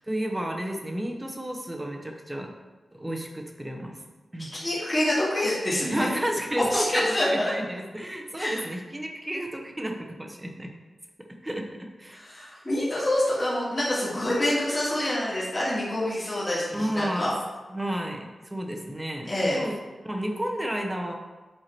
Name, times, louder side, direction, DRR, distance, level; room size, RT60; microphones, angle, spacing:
voice 1, 0.1-2.5 3.0-4.0 4.3-4.5 5.9-10.7 11.4-12.2 16.7-17.3 17.7-19.8 20.0-21.2, right 1 dB, 10° right, 2 dB, 0.9 m, -31 dB
voice 2, 4.5-6.1 6.7-7.5 8.4-8.5 12.1-17.3 19.2-19.6, left 1 dB, 20° left, -8 dB, 2.0 m, -26 dB
7.8 x 4.7 x 4.5 m, 1.2 s
wide cardioid pair, 150°, 0 cm